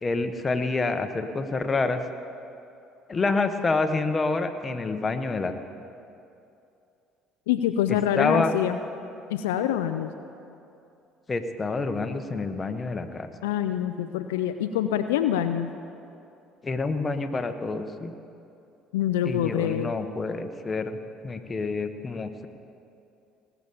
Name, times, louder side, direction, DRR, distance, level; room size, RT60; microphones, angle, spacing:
voice 1, 0.0-2.0 3.1-5.5 7.9-8.5 11.3-13.3 16.6-18.1 19.2-21.0 21.2-22.5, left 3 dB, 30° left, 7 dB, 1.1 m, -27 dB
voice 2, 7.5-8.8 9.3-10.1 13.4-15.7 18.9-19.9, left 10 dB, 85° left, 9 dB, 0.4 m, -25 dB
19.0 x 7.1 x 6.9 m, 2.7 s
hypercardioid pair, 65°, 0 cm